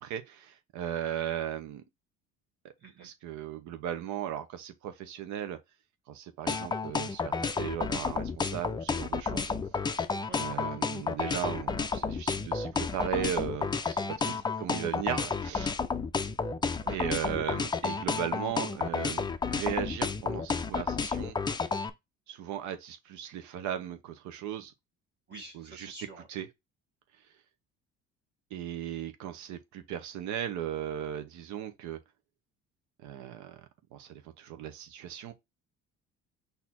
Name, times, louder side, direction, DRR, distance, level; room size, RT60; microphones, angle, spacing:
voice 1, 0.0-1.8 2.6-2.7 3.0-5.6 6.1-9.5 10.4-14.0 14.6-15.7 16.8-21.4 22.3-24.7 25.5-25.9 26.3-26.5 28.5-32.0 33.0-33.6 33.9-35.3, right 10 dB, 75° right, 0.8 m, -37 dB
voice 2, 2.8-3.1 10.3-10.4 14.2-14.4 25.3-26.3, right 4 dB, 35° right, 1.4 m, -47 dB
sound 1, 6.5-21.9, left 5 dB, 15° left, 0.4 m, -31 dB
4.2 x 2.8 x 4.2 m
cardioid pair, 120°, 30 cm